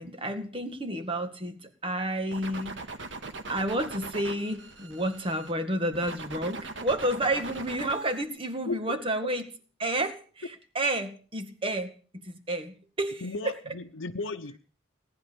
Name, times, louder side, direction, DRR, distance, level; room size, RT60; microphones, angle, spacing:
voice 1, 0.0-2.9 3.5-9.5 9.8-13.6, right 1 dB, 30° right, 2.0 m, -31 dB
sound 1, 2.3-5.5 5.9-8.2, right 3 dB, 70° right, 2.0 m, -40 dB
voice 2, 8.7-9.0 9.2-9.3 13.2-14.6, left 3 dB, 90° left, 0.9 m, -35 dB
18.5 x 10.5 x 7.0 m
head